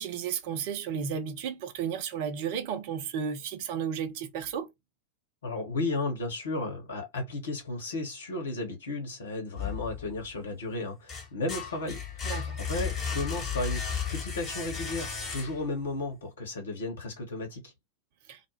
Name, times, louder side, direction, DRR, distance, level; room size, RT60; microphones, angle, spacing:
voice 1, 0.0-4.7 12.2-12.6 18.3-18.4, right 7 dB, 50° right, 0.6 m, -33 dB
voice 2, 5.4-13.8 14.1-17.7, left 2 dB, 65° left, 1.1 m, -34 dB
sound 1, 9.5-10.4 10.8-15.8, left 7 dB, 25° left, 0.9 m, -34 dB
2.3 x 2.2 x 3.0 m
figure-of-eight pair, 90°, 0 cm